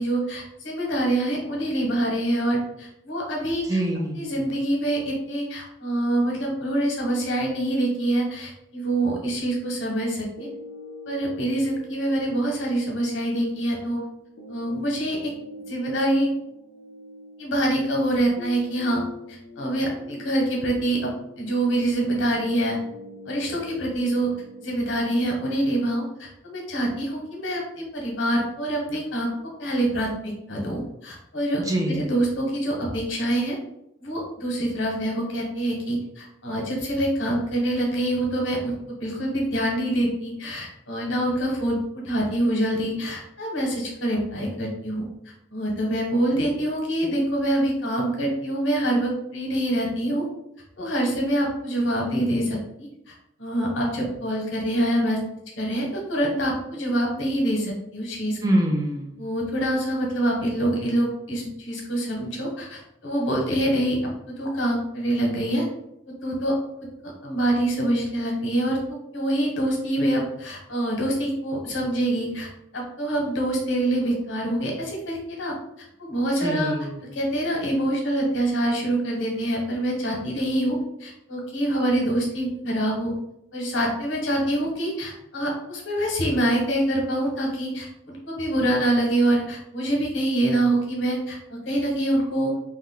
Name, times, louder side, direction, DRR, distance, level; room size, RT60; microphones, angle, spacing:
voice 1, 0.0-3.8 4.1-10.5 11.1-14.0 14.5-15.3 15.7-16.3 17.4-19.0 19.3-21.1 21.4-22.8 23.3-24.3 24.6-29.3 29.6-31.6 31.9-33.6 34.0-45.0 45.5-50.2 50.8-53.1 53.4-55.2 55.6-58.4 59.2-65.6 66.2-66.5 67.0-75.5 76.0-76.7 77.1-83.1 83.5-92.5, right 1 dB, 80° left, -1 dB, 1.0 m, -25 dB
voice 2, 3.6-4.3 31.6-32.1 58.4-59.2 76.4-77.0, right 1 dB, 20° right, 0 dB, 0.4 m, -25 dB
sound 1, 10.4-26.4, left 2 dB, 60° left, 0.5 m, -44 dB
3.2 x 2.1 x 3.6 m, 0.80 s
head